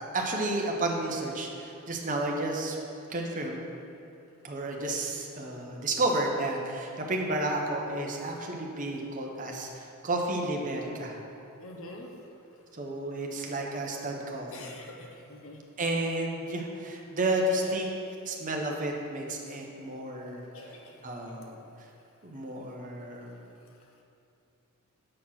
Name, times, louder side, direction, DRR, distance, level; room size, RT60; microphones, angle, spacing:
voice 1, 0.0-2.8 3.1-3.6 4.4-11.2 12.8-14.7 15.8-17.9 18.3-20.4 21.0-21.6 22.2-23.4, right 1 dB, 35° right, 0 dB, 0.8 m, -31 dB
voice 2, 11.6-12.1 14.5-15.6 17.6-17.7 20.5-21.0, left 2 dB, 65° left, 2 dB, 0.9 m, -45 dB
7.7 x 4.3 x 5.8 m, 2.7 s
head